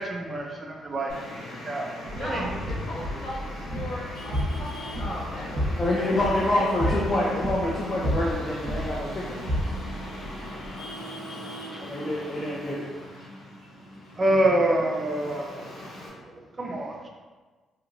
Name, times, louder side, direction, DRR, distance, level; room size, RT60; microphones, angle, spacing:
voice 1, 0.0-1.9 2.2-2.4 14.2-16.1 16.6-17.1, right 1 dB, 35° right, 1 dB, 0.4 m, -27 dB
Traffic noise roadway noise, 1.1-16.1, left 1 dB, 80° left, 0.8 m, -40 dB
sound 1, 2.0-10.7, equal, 50° right, 0.9 m, -32 dB
voice 2, 2.1-4.7 5.0-7.0, left 1 dB, 65° left, -8 dB, 1.3 m, -37 dB
voice 3, 5.8-9.5 11.8-12.9, left 1 dB, 30° left, -4 dB, 0.5 m, -27 dB
2.8 x 2.7 x 2.6 m, 1.3 s
cardioid pair, 90°, 0 cm